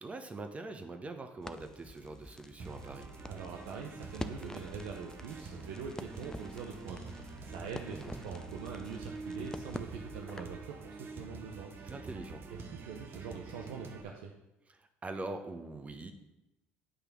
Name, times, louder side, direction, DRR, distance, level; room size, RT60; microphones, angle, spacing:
voice 1, 0.0-3.1 7.7-8.1 11.8-12.4 14.7-16.1, right 2 dB, 25° right, 6 dB, 1.1 m, -43 dB
Crackle, 1.4-10.6, left 2 dB, 15° left, 0.5 m, -47 dB
sound 1, 2.6-14.0, right 3 dB, 50° right, 1.0 m, -46 dB
voice 2, 3.2-11.9 12.5-14.3, right 6 dB, 85° right, 0 dB, 0.7 m, -44 dB
9.3 x 3.3 x 6.0 m, 0.94 s
supercardioid pair, 70°, 5 cm